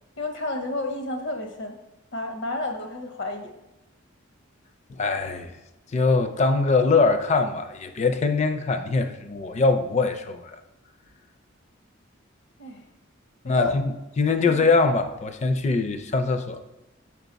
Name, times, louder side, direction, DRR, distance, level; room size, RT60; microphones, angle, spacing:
voice 1, 0.2-1.8 2.1-3.5 12.6-12.8 13.4-13.8 14.5-14.6, left 2 dB, 60° left, 0.8 m, -31 dB
voice 2, 4.9-5.5 5.9-10.6 13.4-16.6, left 3 dB, 35° left, 0.4 m, -23 dB
5.5 x 4.6 x 4.0 m
head